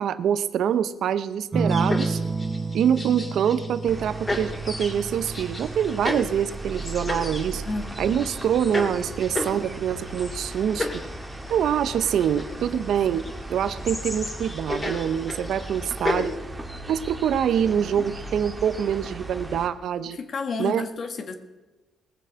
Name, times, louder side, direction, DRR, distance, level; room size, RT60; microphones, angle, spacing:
voice 1, 0.0-2.2 2.7-7.6 8.0-11.0 11.5-13.2 13.5-16.3 16.9-20.2 20.6-20.9, right 9 dB, 70° right, 14 dB, 0.7 m, -25 dB
sound 1, 1.5-10.6 12.0-12.6, right 3 dB, 30° right, 0.8 m, -32 dB
sound 2, 1.7-3.9 4.3-16.3, left 2 dB, 25° left, 2.7 m, -34 dB
sound 3, 3.9-19.7, right 2 dB, 15° right, 1.8 m, -37 dB
voice 2, 7.7-8.3 12.4-12.9 17.6-18.1 20.1-21.3, left 4 dB, 50° left, 7 dB, 1.7 m, -33 dB
20.0 x 7.4 x 5.7 m, 1.2 s
cardioid pair, 90°, 0 cm